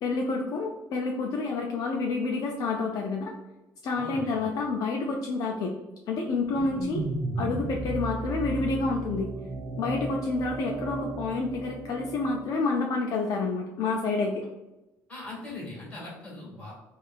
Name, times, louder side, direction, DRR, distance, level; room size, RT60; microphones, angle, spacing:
voice 1, 0.0-3.3 3.8-5.7 6.1-7.0 7.4-9.3 9.8-14.4, left 3 dB, 60° left, 0 dB, 0.4 m, -29 dB
voice 2, 3.9-4.5 15.1-16.7, left 2 dB, 20° left, -5 dB, 1.5 m, -40 dB
sound 1, 6.3-12.6, right 3 dB, 40° right, 0.4 m, -35 dB
3.3 x 2.3 x 2.4 m, 1.0 s
cardioid pair, 105°, 7 cm